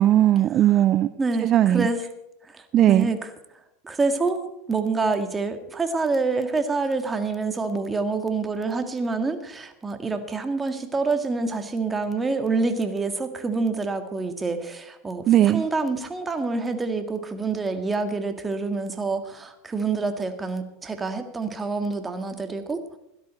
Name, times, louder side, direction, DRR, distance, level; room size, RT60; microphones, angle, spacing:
voice 1, 0.0-1.1 1.4-1.9 2.7-3.1 15.3-15.6, right 12 dB, 40° right, 14 dB, 0.5 m, -18 dB
voice 2, 1.2-2.0 2.5-3.3 3.8-22.8, right 3 dB, 15° right, 7 dB, 1.9 m, -27 dB
16.5 x 12.0 x 4.4 m, 0.83 s
hypercardioid pair, 100°, 0 cm